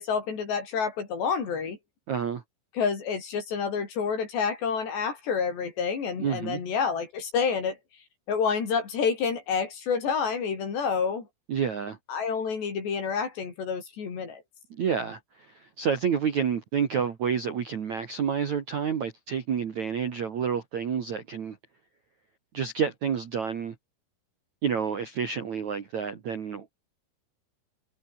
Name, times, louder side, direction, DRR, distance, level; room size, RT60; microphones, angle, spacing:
voice 1, 0.0-1.8 2.8-7.8 8.3-11.3 12.1-14.4, left 6 dB, 55° left, 6.8 m, -28 dB
voice 2, 2.1-2.4 6.2-6.6 11.5-12.0 14.7-15.2 15.5-21.6 22.5-23.7 24.6-26.8, right 7 dB, 55° right, 2.3 m, -29 dB
omnidirectional pair, 5.9 m